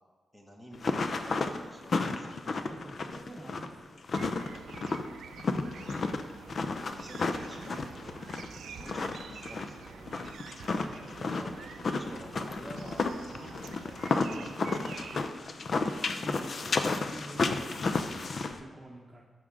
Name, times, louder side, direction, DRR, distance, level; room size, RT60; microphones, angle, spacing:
voice 1, 0.3-2.7 6.9-8.3 8.6-10.1 11.0-11.6 11.8-13.0 13.3-15.3, equal, 10° left, -1 dB, 1.7 m, -50 dB
sound 1, 0.7-18.6, left 3 dB, 55° left, 0.6 m, -32 dB
voice 2, 2.6-4.0 10.7-11.0 16.2-19.2, right 1 dB, 20° right, -2 dB, 1.1 m, -47 dB
sound 2, 4.2-15.3, right 7 dB, 90° right, 0.4 m, -48 dB
12.0 x 6.4 x 3.7 m, 1.5 s
cardioid pair, 80°, 0 cm